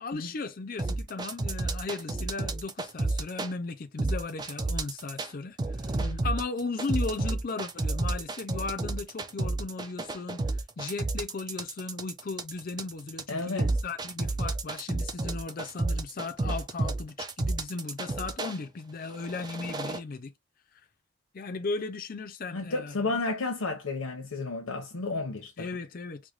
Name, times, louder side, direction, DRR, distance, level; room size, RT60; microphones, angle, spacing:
voice 1, 0.0-10.4 10.8-20.3 21.3-23.1 25.6-26.2, left 3 dB, 40° left, 0.5 m, -36 dB
sound 1, 0.8-3.5 4.0-5.3 5.6-18.6 19.1-20.0, right 2 dB, 20° right, 0.4 m, -31 dB
voice 2, 13.3-13.7 22.5-25.7, left 3 dB, 85° left, 0.8 m, -32 dB
4.7 x 2.2 x 2.4 m
head